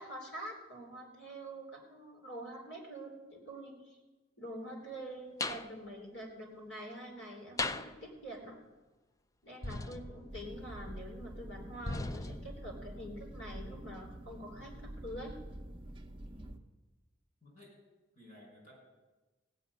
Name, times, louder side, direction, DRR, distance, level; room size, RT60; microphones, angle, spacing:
voice 1, 0.0-4.0 4.4-8.6 9.4-15.3, right 1 dB, 70° left, 0 dB, 3.6 m, -46 dB
sound 1, 5.4-5.7 7.6-8.0 9.6-10.6 11.9-12.7, left 2 dB, 20° left, 0.4 m, -38 dB
sound 2, 10.3-16.6, right 1 dB, 25° right, 0.8 m, -47 dB
voice 2, 16.2-16.6 17.4-17.7 18.1-18.8, left 1 dB, 45° left, -1 dB, 5.7 m, -57 dB
16.0 x 6.0 x 9.5 m, 1.2 s
head